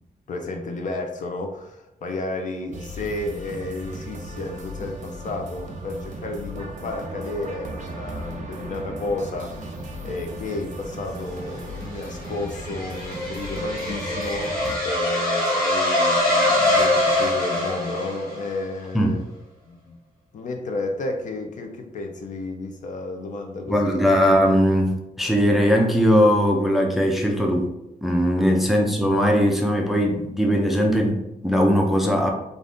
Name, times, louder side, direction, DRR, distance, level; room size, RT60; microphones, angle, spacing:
voice 1, 0.3-9.7 10.0-19.3 19.7-20.0 20.3-24.0 28.4-28.7, left 2 dB, 55° left, 3 dB, 0.5 m, -32 dB
sound 1, 2.7-14.8, right 1 dB, 55° right, 0.6 m, -36 dB
sound 2, 11.5-18.6, left 1 dB, 85° left, 1.4 m, -23 dB
voice 2, 23.7-27.7 28.0-32.3, equal, ahead, 0 dB, 0.4 m, -20 dB
2.5 x 2.5 x 3.4 m, 0.87 s
wide cardioid pair, 125°, 15 cm